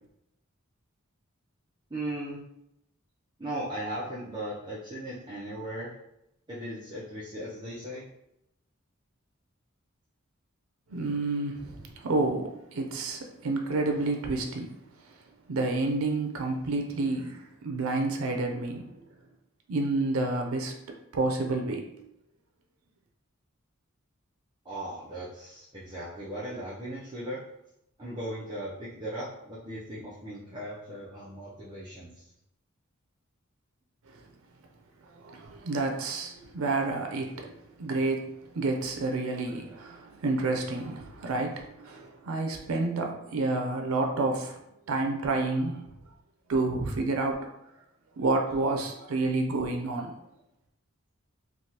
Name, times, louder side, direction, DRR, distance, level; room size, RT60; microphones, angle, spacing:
voice 1, 1.9-2.4 3.4-6.0 6.5-8.1 24.6-27.4 28.0-32.2, right 1 dB, 20° right, -8 dB, 0.6 m, -37 dB
voice 2, 10.9-14.8 15.5-18.9 19.7-21.9 35.1-44.6 44.9-45.9 46.5-47.5 48.2-50.1, right 3 dB, 90° right, 3 dB, 0.5 m, -29 dB
3.3 x 2.3 x 2.8 m, 0.83 s
head